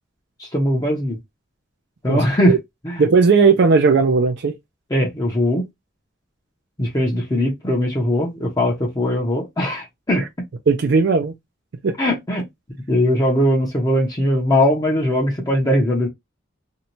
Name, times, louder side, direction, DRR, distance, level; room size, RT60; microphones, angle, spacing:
voice 1, 0.4-1.2 2.0-2.6 2.8-3.0 4.9-5.7 6.8-10.2 12.0-12.5 12.9-16.1, left 1 dB, 20° left, 0.6 m, -20 dB
voice 2, 3.0-4.5 10.7-11.3 11.8-11.9, right 4 dB, 60° right, 0.4 m, -16 dB
2.7 x 2.2 x 2.9 m
head